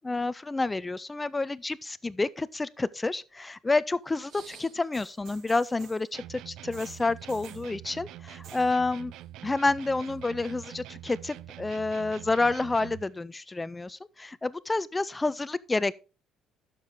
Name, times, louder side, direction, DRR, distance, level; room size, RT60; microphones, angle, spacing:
voice 1, 0.0-9.1 9.4-15.9, left 3 dB, 10° left, 0.4 m, -29 dB
sound 1, 4.1-6.1 6.7-7.7 8.3-8.7 9.0-9.5 9.8-10.6 11.4-11.5, right 6 dB, 55° right, 1.6 m, -52 dB
sound 2, 6.1-13.1, right 13 dB, 70° right, 0.4 m, -45 dB
11.5 x 6.7 x 3.6 m
cardioid pair, 155°, 0 cm